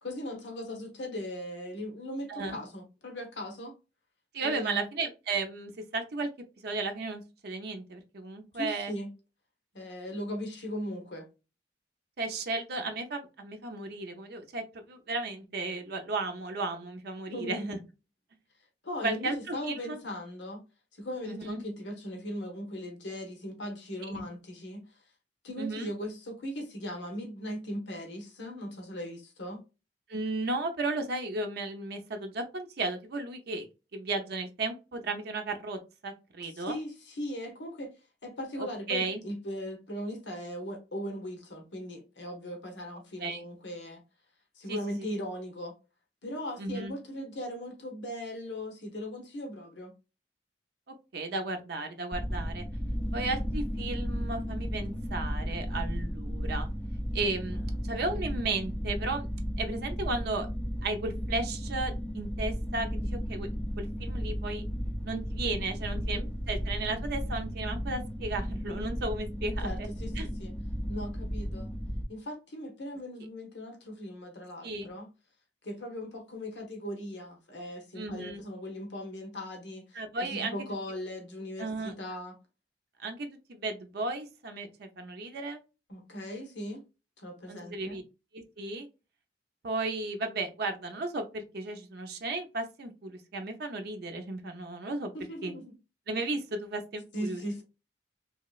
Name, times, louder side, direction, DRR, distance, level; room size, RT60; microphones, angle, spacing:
voice 1, 0.0-3.7 4.4-4.8 8.5-9.1 9.7-11.3 17.3-17.7 18.8-20.6 20.9-24.8 25.4-29.6 36.5-37.9 38.2-44.0 44.6-45.7 46.2-49.9 57.8-57.9 65.9-66.3 69.6-70.5 70.9-71.7 72.1-75.1 75.6-82.4 85.9-86.8 87.2-88.0 95.1-95.7 97.1-97.6, equal, 85° left, 1.0 m, -38 dB
voice 2, 4.3-6.3 6.6-8.9 12.2-17.8 19.0-20.0 21.3-21.6 24.1-24.2 25.6-25.9 30.1-33.7 33.9-36.8 38.6-39.2 43.2-43.4 44.7-44.8 46.6-46.9 51.1-52.7 53.1-56.7 57.1-57.6 57.9-59.3 59.6-60.5 60.8-63.5 63.8-64.6 65.0-69.9 70.2-70.3 74.6-74.9 78.0-78.4 79.9-80.6 81.6-81.9 83.0-85.6 87.5-88.0 88.3-88.9 89.6-95.1 95.4-95.5 96.1-97.4, right 3 dB, 60° right, 0.5 m, -34 dB
sound 1, 52.1-72.0, equal, 5° left, 0.4 m, -34 dB
3.0 x 2.7 x 2.3 m
head